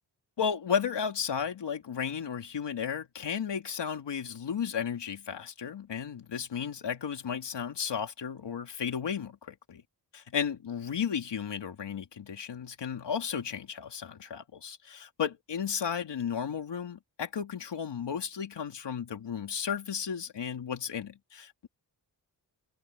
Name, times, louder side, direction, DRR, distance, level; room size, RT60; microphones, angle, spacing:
voice 1, 0.4-9.8 10.1-21.7, left 7 dB, 80° left, 2.9 m, -34 dB
wide cardioid pair, 100°, 42 cm